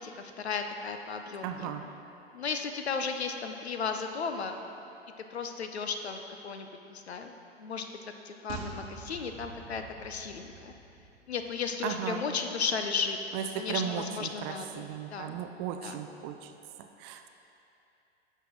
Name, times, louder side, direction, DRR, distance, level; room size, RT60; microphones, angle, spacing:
voice 1, 0.0-1.7 2.3-4.6 5.3-7.3 7.6-10.7 11.3-13.2 13.5-14.8 15.1-15.4 15.8-16.0, left 5 dB, 80° left, 6 dB, 0.7 m, -35 dB
voice 2, 1.4-1.9 11.8-12.2 13.3-16.5 16.8-17.3, right 8 dB, 30° right, 7 dB, 0.4 m, -36 dB
sound 1, 8.5-11.9 12.2-12.3, right 4 dB, 50° right, 1.0 m, -46 dB
10.5 x 6.8 x 3.1 m, 2.8 s
figure-of-eight pair, 95°, 32 cm